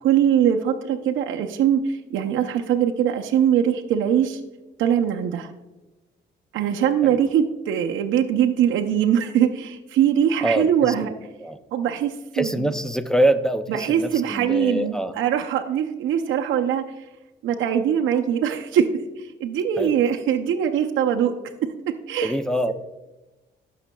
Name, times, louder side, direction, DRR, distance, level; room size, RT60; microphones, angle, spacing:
voice 1, 0.0-4.4 4.8-5.5 6.5-11.1 11.7-12.7 13.7-17.0 17.4-21.3 21.6-21.7 22.1-22.3, right 9 dB, 80° right, 3 dB, 0.6 m, -22 dB
voice 2, 10.4-11.1 11.4-11.6 12.3-15.1 19.8-19.9 22.2-22.7, right 1 dB, 5° left, 8 dB, 0.4 m, -24 dB
12.5 x 5.7 x 2.2 m, 1.1 s
cardioid pair, 90°, 20 cm